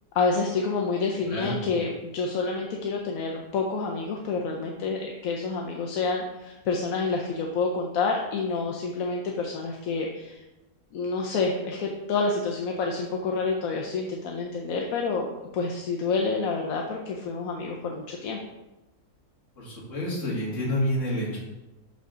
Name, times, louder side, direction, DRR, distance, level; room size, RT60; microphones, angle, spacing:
voice 1, 0.1-10.4 10.9-15.3 15.5-18.4, left 4 dB, 65° left, 1 dB, 1.1 m, -28 dB
voice 2, 19.6-21.4, equal, 50° left, -5 dB, 2.3 m, -28 dB
6.3 x 5.7 x 3.7 m, 1.0 s
omnidirectional pair, 1.7 m